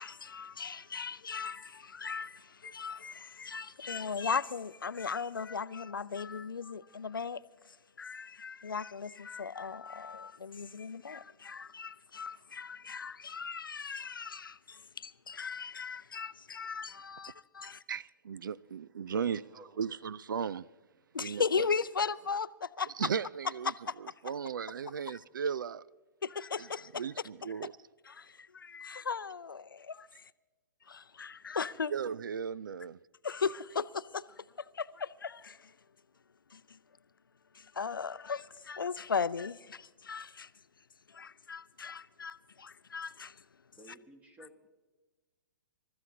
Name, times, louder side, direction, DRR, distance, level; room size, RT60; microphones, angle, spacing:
voice 1, 0.0-7.4 7.7-17.8 21.1-22.9 23.7-23.9 25.1-25.2 26.2-27.0 28.1-30.1 30.9-31.9 33.2-35.7 36.5-36.8 37.5-40.5 41.1-43.4, left 5 dB, 80° left, 0.5 m, -37 dB
voice 2, 17.9-19.4 19.8-20.7 21.2-21.7 23.0-25.8 26.6-26.7 27.0-27.7 31.9-33.0, right 7 dB, 70° right, 0.4 m, -36 dB
voice 3, 19.1-19.8 43.8-44.7, right 1 dB, 15° right, 1.6 m, -54 dB
28.0 x 14.0 x 2.8 m
figure-of-eight pair, 115°, 11 cm